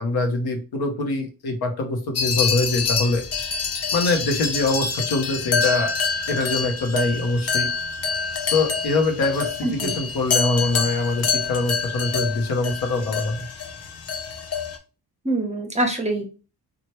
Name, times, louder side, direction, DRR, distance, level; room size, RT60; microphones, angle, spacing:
voice 1, 0.0-3.2 3.9-5.9 6.3-7.7 8.4-13.4, left 2 dB, 70° left, 4 dB, 0.9 m, -24 dB
sound 1, 2.2-14.8, left 5 dB, 40° left, 0.6 m, -26 dB
voice 2, 9.6-9.9 15.2-16.3, right 2 dB, 15° right, 3 dB, 0.8 m, -24 dB
3.0 x 2.4 x 3.0 m, 0.33 s
cardioid pair, 95°, 40 cm